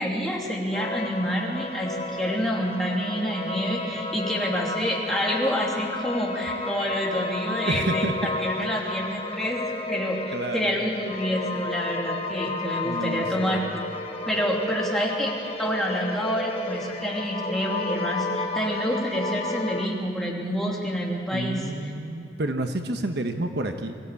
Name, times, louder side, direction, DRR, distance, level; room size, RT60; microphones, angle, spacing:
voice 1, 0.0-13.6 14.2-15.3 15.6-21.6, equal, ahead, -3 dB, 2.9 m, -28 dB
sound 1, 0.7-19.9, left 2 dB, 35° left, 1.2 m, -32 dB
voice 2, 7.6-8.1 9.6-9.7 10.3-10.7 12.5-12.6 12.8-13.7 21.3-23.9, right 2 dB, 65° right, 6 dB, 1.1 m, -30 dB
24.0 x 15.0 x 8.5 m, 2.7 s
head